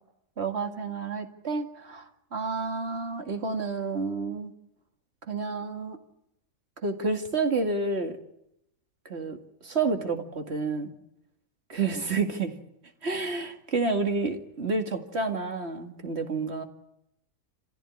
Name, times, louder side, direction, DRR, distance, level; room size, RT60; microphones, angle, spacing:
voice 1, 0.4-4.5 5.3-6.0 6.8-8.2 9.1-9.4 9.6-10.9 11.7-12.5 13.0-16.6, right 4 dB, 45° right, 5 dB, 2.4 m, -29 dB
27.0 x 16.0 x 9.8 m, 0.83 s
omnidirectional pair, 1.5 m